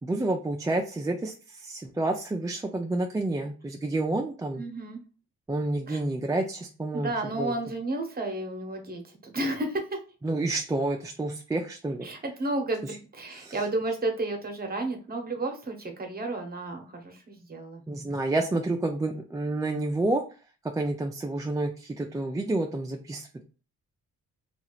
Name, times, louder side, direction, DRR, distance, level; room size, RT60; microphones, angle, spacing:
voice 1, 0.0-4.6 5.5-7.1 7.4-7.5 10.2-12.1 13.4-13.6 17.9-20.2 20.7-23.4, right 2 dB, 10° right, 2 dB, 0.3 m, -29 dB
voice 2, 4.6-5.0 5.9-6.0 6.9-10.0 12.0-17.8, right 2 dB, 30° right, 4 dB, 0.9 m, -32 dB
2.8 x 2.4 x 2.9 m, 0.36 s
supercardioid pair, 65°, 31 cm